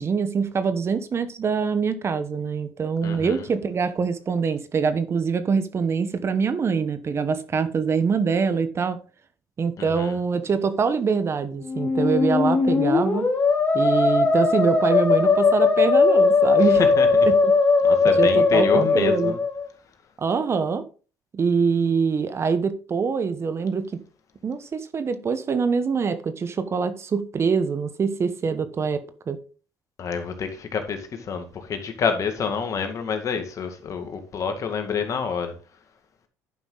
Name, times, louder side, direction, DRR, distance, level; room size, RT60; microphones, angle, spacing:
voice 1, 0.0-9.0 9.6-13.3 13.7-16.8 17.2-17.5 18.2-19.3 20.2-20.8 21.3-24.0 24.4-29.4, right 5 dB, 40° right, 1.1 m, -24 dB
voice 2, 3.0-3.4 9.8-10.2 16.8-17.3 17.8-19.4 30.0-35.5, left 6 dB, 50° left, 2.0 m, -28 dB
Musical instrument, 11.6-19.7, left 4 dB, 30° left, 2.7 m, -19 dB
10.5 x 5.7 x 4.0 m
supercardioid pair, 80°, 7 cm